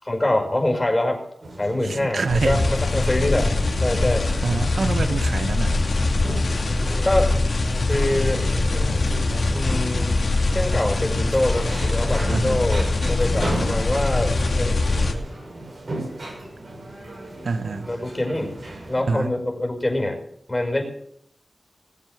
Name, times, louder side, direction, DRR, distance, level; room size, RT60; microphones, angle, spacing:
voice 1, 0.0-1.2 1.6-3.5 3.8-4.3 7.1-7.3 7.9-8.4 9.5-10.2 10.5-14.8 17.9-18.6 18.9-20.2 20.5-20.8, left 1 dB, 20° left, 2 dB, 5.5 m, -24 dB
sound 1, 1.4-19.0, right 1 dB, 60° right, 6.7 m, -35 dB
voice 2, 1.8-2.7 4.4-5.8 12.3-12.6 17.4-17.9 19.1-19.3, right 4 dB, 90° right, 10 dB, 1.1 m, -26 dB
sound 2, 2.3-15.1, left 2 dB, 80° left, 2.8 m, -22 dB
20.5 x 7.7 x 8.1 m, 0.75 s
wide cardioid pair, 80°, 0 cm